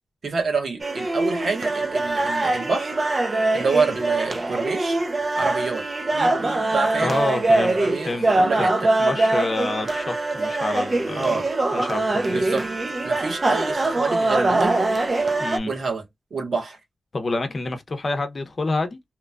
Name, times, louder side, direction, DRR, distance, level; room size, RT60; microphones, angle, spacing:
voice 1, 0.2-2.9 3.5-5.0 5.4-5.8 6.1-8.9 11.2-11.5 12.3-12.6 13.0-14.8 15.6-16.0 16.3-16.8, right 4 dB, 70° right, 1.1 m, -27 dB
sound 1, 0.8-15.6, right 2 dB, 40° right, 0.6 m, -23 dB
voice 2, 7.0-8.3 8.6-8.7 9.0-11.4 11.7-12.6 15.4-15.7 17.1-19.0, left 2 dB, 45° left, 0.7 m, -28 dB
3.0 x 2.3 x 2.2 m
cardioid pair, 75°, 0 cm